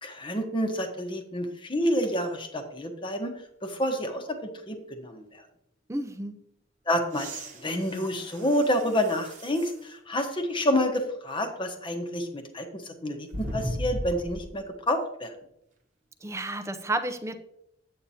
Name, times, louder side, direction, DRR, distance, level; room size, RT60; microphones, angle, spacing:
voice 1, 0.0-3.3 3.6-5.4 6.9-15.3, equal, 25° left, 5 dB, 1.0 m, -29 dB
voice 2, 5.9-6.4 16.2-17.4, right 2 dB, 15° right, 9 dB, 0.6 m, -31 dB
sound 1, 7.1-9.8 10.5-10.6 13.3-14.5 16.4-16.5, equal, 40° right, 1.1 m, -37 dB
8.6 x 8.5 x 2.8 m, 0.79 s
head